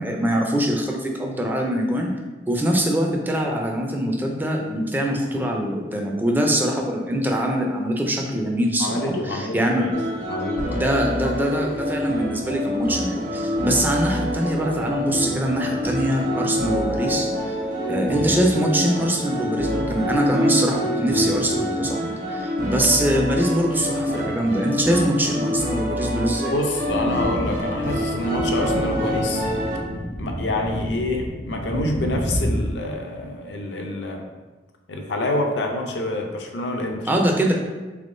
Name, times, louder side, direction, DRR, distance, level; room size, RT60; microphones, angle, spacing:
voice 1, 0.0-2.1 2.5-9.9 10.7-17.5 17.9-26.5 37.1-37.5, equal, 10° right, 1 dB, 0.4 m, -23 dB
voice 2, 8.8-9.9 10.3-10.9 11.2-11.3 26.5-29.4 30.2-34.2 34.9-37.1, left 1 dB, 75° left, 2 dB, 0.5 m, -27 dB
sound 1, 9.9-29.8, equal, 50° right, 0.8 m, -26 dB
sound 2, 26.8-32.6, equal, 75° right, 1.4 m, -29 dB
3.5 x 3.5 x 2.6 m, 1.2 s
head